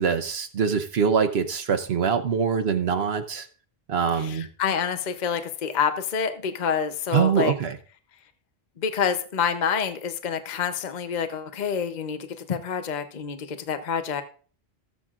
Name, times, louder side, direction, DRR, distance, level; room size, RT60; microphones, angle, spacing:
voice 1, 0.0-3.5 3.9-4.5 7.1-7.8, right 6 dB, 75° right, 7 dB, 1.0 m, -24 dB
voice 2, 4.2-7.5 8.8-14.2, left 7 dB, 50° left, 9 dB, 0.8 m, -27 dB
18.0 x 7.4 x 2.4 m, 0.41 s
omnidirectional pair, 1.1 m